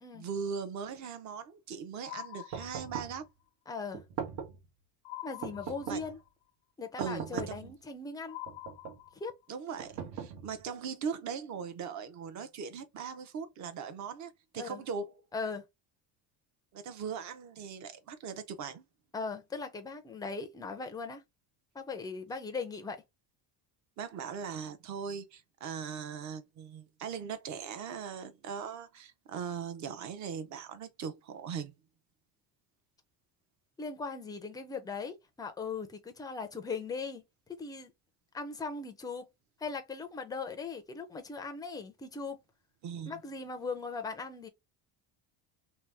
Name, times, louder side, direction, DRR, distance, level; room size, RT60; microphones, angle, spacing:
voice 1, 0.1-3.3 5.9-6.0 7.0-7.7 9.5-15.1 16.7-18.8 24.0-31.7 42.8-43.2, right 6 dB, 45° right, 0.6 m, -39 dB
sound 1, 2.0-3.3 5.0-6.3 8.3-9.5, left 17 dB, 90° left, 0.6 m, -46 dB
sound 2, 2.5-3.2 3.9-4.7 5.4-6.2 7.0-7.7 8.5-9.1 9.8-10.7, right 7 dB, 75° right, 1.0 m, -40 dB
voice 2, 3.7-4.0 5.2-6.2 6.8-8.4 9.1-9.3 14.6-14.8 15.3-15.6 19.1-21.2 21.7-23.0 33.8-37.2 37.5-37.9 38.3-39.3 39.6-42.4 43.1-44.5, left 4 dB, 10° left, 0.4 m, -39 dB
2.8 x 2.0 x 3.2 m
cardioid pair, 140°, 42 cm